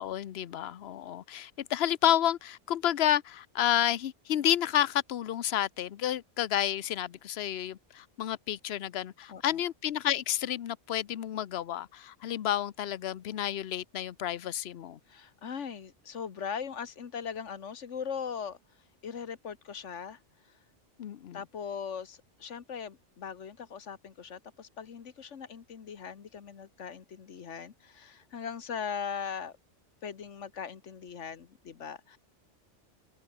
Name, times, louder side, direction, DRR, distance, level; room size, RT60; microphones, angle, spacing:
voice 1, 0.0-15.0 21.0-21.4, left 11 dB, 65° left, 0.9 m, -30 dB
voice 2, 15.1-18.6 19.0-20.2 21.3-29.5 30.0-32.2, left 7 dB, 80° left, 1.6 m, -40 dB
omnidirectional pair, 1.2 m